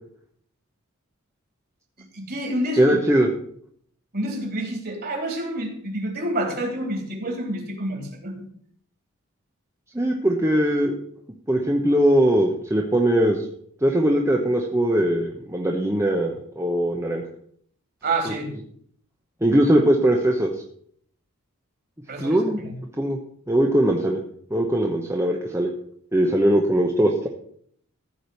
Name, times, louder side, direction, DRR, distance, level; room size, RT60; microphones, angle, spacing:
voice 1, 2.0-3.0 4.1-8.5 18.0-18.5 22.1-22.7, right 1 dB, 45° right, 1 dB, 3.4 m, -28 dB
voice 2, 2.8-3.3 9.9-10.9 11.5-13.4 13.8-17.2 19.4-20.5 22.2-22.6 23.0-23.2 23.5-24.2 24.5-25.7 26.1-27.3, right 1 dB, 10° right, 0 dB, 1.0 m, -20 dB
14.5 x 5.0 x 7.0 m, 0.62 s
head